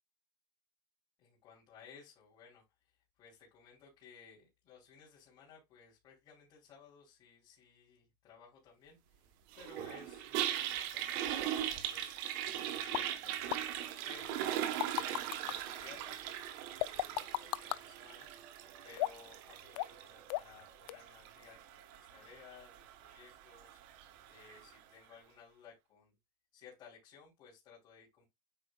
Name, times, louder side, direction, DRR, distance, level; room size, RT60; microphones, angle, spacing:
voice 1, 1.2-9.3 9.5-12.1 12.4-13.4 14.0-16.3 16.6-18.5 18.8-23.8 24.3-26.1 26.5-28.3, left 6 dB, 35° left, 2.9 m, -58 dB
Toilet flush, 9.5-24.7, right 11 dB, 60° right, 1.0 m, -40 dB
sound 1, 12.9-13.0 13.5-13.6 14.5-15.5 16.8-17.8 19.0-19.3 19.8-20.0 20.3-20.6 20.9-21.0, left 18 dB, 80° left, 0.4 m, -35 dB
8.8 x 4.9 x 2.2 m
supercardioid pair, 155°, 12 cm